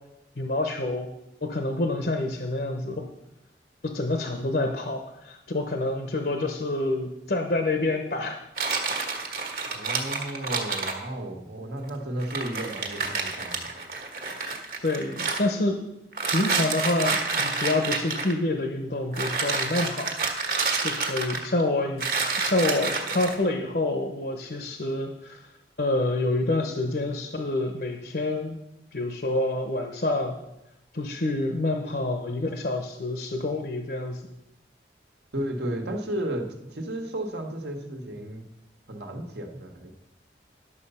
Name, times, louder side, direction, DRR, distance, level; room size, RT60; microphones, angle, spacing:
voice 1, 0.4-1.1 1.4-3.1 3.8-8.4 14.3-15.8 16.2-20.5 20.8-22.1 22.4-25.4 25.8-28.6 28.9-30.4 30.9-34.2, left 2 dB, 55° left, 5 dB, 0.8 m, -27 dB
sound 1, 8.6-11.0 11.9-12.0 12.2-15.4 16.1-18.3 19.1-21.6 22.0-23.4, right 4 dB, 50° right, 1.5 m, -28 dB
voice 2, 9.7-13.7 35.3-38.4 38.9-39.9, right 1 dB, 70° right, 3 dB, 1.4 m, -33 dB
11.0 x 6.9 x 5.6 m, 0.86 s
head